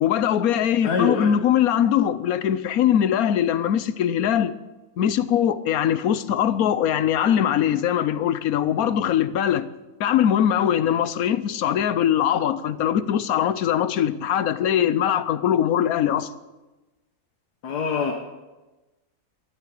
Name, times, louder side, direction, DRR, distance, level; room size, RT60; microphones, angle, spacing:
voice 1, 0.0-4.5 5.0-9.7 10.0-16.3, left 10 dB, 70° left, 1.2 m, -21 dB
voice 2, 0.8-1.4 17.6-18.1, left 5 dB, 85° left, 1.8 m, -24 dB
14.0 x 11.0 x 8.3 m
omnidirectional pair, 1.6 m